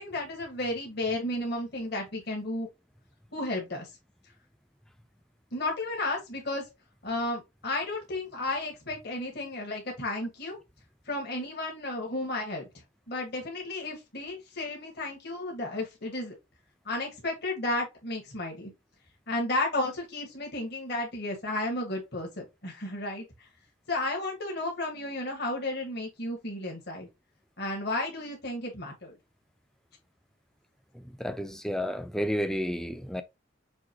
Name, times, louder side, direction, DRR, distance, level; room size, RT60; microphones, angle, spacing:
voice 1, 0.0-2.7 3.3-3.9 5.5-6.6 7.0-10.6 11.1-12.7 13.1-16.3 16.8-18.7 19.3-23.5 23.9-27.1 27.6-29.2, left 2 dB, 50° left, 1.6 m, -33 dB
voice 2, 30.9-33.2, equal, ahead, 0.4 m, -31 dB
6.1 x 2.9 x 2.8 m
head